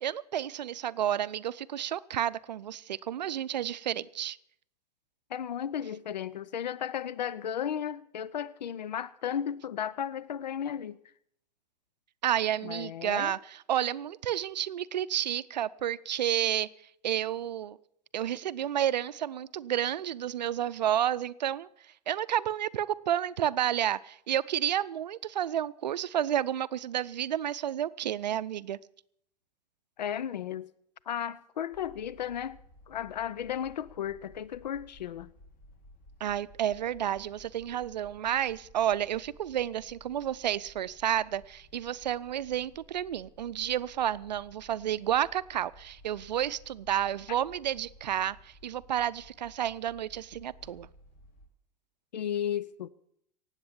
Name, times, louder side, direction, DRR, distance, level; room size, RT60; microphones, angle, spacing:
voice 1, 0.0-4.4 12.2-13.4 13.7-16.7 17.0-17.8 18.1-21.7 22.1-28.8 36.2-50.9, right 10 dB, 85° right, 0.5 m, -31 dB
voice 2, 5.3-11.0 12.6-13.3 30.0-30.7 31.1-32.6 32.9-35.3 47.3-47.4 52.1-52.9, left 9 dB, 85° left, 0.5 m, -34 dB
sound 1, 31.7-51.5, left 1 dB, 40° left, 2.9 m, -56 dB
17.5 x 8.1 x 7.4 m
hypercardioid pair, 90°, 21 cm